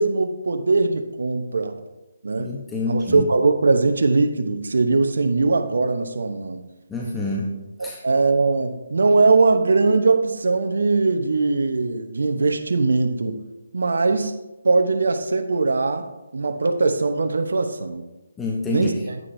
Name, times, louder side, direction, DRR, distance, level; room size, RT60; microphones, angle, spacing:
voice 1, 0.0-1.8 2.2-2.5 2.9-6.6 7.8-13.4 13.7-14.3 14.6-16.1 16.3-18.0 18.7-19.2, right 3 dB, 70° right, 6 dB, 0.9 m, -20 dB
voice 2, 2.4-3.3 6.9-7.5 7.8-8.0 18.4-19.0, left 2 dB, 10° left, -3 dB, 0.9 m, -27 dB
9.6 x 8.7 x 2.7 m, 0.99 s
figure-of-eight pair, 155°, 0 cm